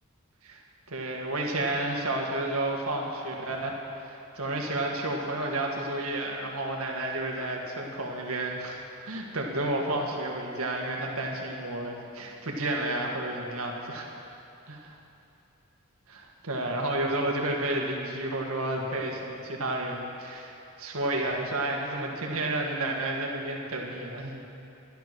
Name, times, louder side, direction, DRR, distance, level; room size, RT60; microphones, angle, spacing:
voice 1, 0.9-8.8 9.1-14.1 14.7-15.0 16.1-24.4, right 1 dB, 85° right, 0 dB, 1.8 m, -31 dB
12.0 x 11.5 x 6.1 m, 2.7 s
head